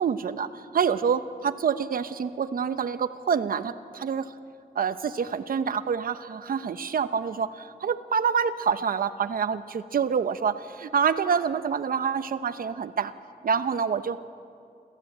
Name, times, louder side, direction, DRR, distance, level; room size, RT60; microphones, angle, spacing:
voice 1, 0.0-4.3 4.7-13.1 13.4-14.2, right 6 dB, 65° right, 12 dB, 0.9 m, -27 dB
26.5 x 15.5 x 8.6 m, 2.4 s
wide cardioid pair, 155°, 16 cm